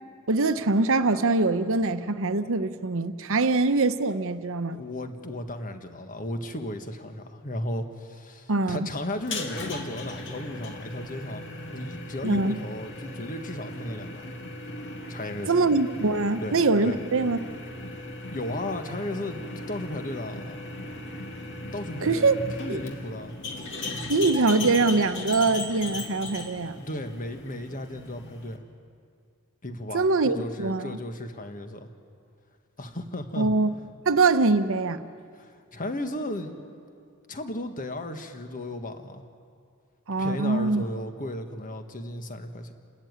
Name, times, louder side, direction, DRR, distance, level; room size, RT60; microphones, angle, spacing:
voice 1, 0.3-4.8 8.5-8.9 12.2-12.6 15.5-17.4 22.0-22.4 22.7-22.8 24.1-26.8 29.9-31.0 33.4-33.7 34.1-35.0 40.1-40.8, right 3 dB, 65° right, 10 dB, 1.0 m, -23 dB
voice 2, 4.7-11.4 11.7-14.3 15.1-15.5 16.4-16.6 16.8-17.0 18.3-20.6 21.7-23.3 26.8-28.6 29.6-31.9 32.8-33.5 35.3-36.6 37.3-39.2 40.2-42.7, left 1 dB, 40° left, 7 dB, 1.6 m, -35 dB
sound 1, 9.2-28.6, left 2 dB, 55° left, 2.2 m, -37 dB
29.0 x 13.5 x 9.5 m, 2.2 s
head